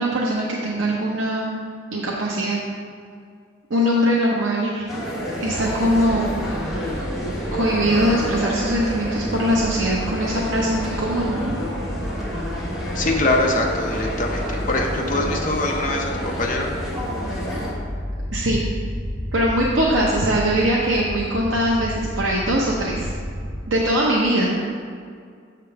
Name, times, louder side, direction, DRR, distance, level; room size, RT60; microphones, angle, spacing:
voice 1, 0.0-1.6 1.9-2.6 3.7-4.8 5.4-6.5 7.5-11.6 18.3-18.6 19.3-23.1 23.7-24.6, equal, 75° right, -4 dB, 0.8 m, -21 dB
sound 1, 4.9-17.7, equal, ahead, 1.2 m, -30 dB
sound 2, 5.4-23.6, equal, 20° right, 1.3 m, -32 dB
voice 2, 12.9-16.7, left 2 dB, 40° left, 1 dB, 0.7 m, -23 dB
7.4 x 3.7 x 5.7 m, 2.2 s
head